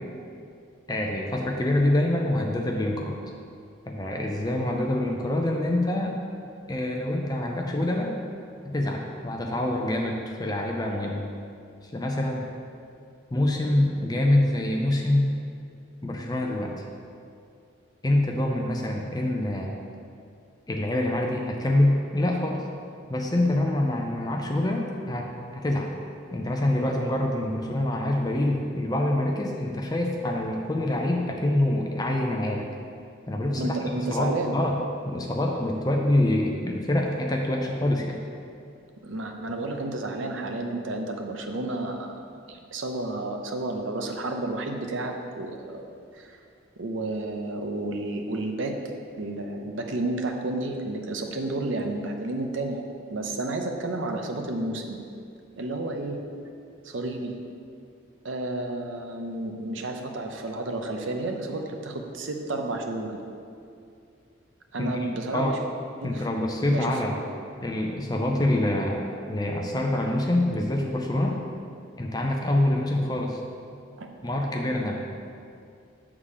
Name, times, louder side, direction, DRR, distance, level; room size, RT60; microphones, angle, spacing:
voice 1, 0.9-3.2 3.9-6.2 6.7-8.2 8.6-11.3 11.8-12.5 13.3-15.3 16.0-16.8 18.0-19.8 20.7-22.7 23.1-25.9 26.3-32.7 33.3-34.8 35.1-38.2 64.8-65.6 66.0-67.2 67.6-71.4 72.0-73.4 74.2-75.0, left 1 dB, 20° left, 1 dB, 0.5 m, -26 dB
voice 2, 33.6-34.6 39.0-45.9 46.1-46.4 46.8-48.7 49.2-52.9 53.1-55.0 55.6-56.2 56.8-57.4 58.2-63.2 64.7-65.6 66.0-66.2 66.7-67.0 74.0-74.1, right 2 dB, 75° right, 3 dB, 0.7 m, -31 dB
8.3 x 3.7 x 6.5 m, 2.4 s
head